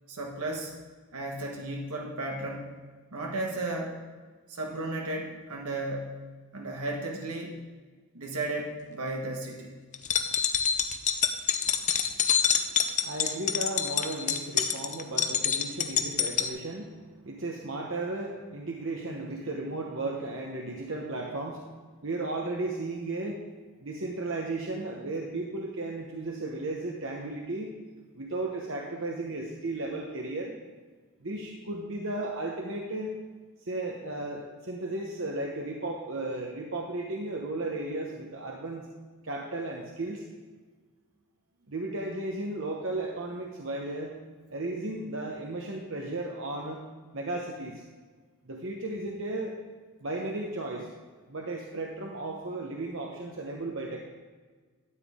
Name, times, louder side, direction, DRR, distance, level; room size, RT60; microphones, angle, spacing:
voice 1, 0.1-0.7 1.1-2.7 3.1-3.9 4.5-6.2 6.5-7.6 8.1-9.7, right 2 dB, 85° right, 0 dB, 1.4 m, -34 dB
sound 1, 9.9-16.5, left 8 dB, 35° left, 0.5 m, -26 dB
voice 2, 11.6-12.4 12.6-21.6 22.0-23.4 23.8-27.8 28.1-30.5 31.2-33.2 33.6-38.9 39.2-40.2 41.7-44.1 44.5-46.8 47.1-47.8 48.4-49.5 50.0-50.9 51.3-54.0, right 2 dB, 55° right, 0 dB, 1.1 m, -35 dB
12.5 x 9.2 x 3.7 m, 1.4 s
head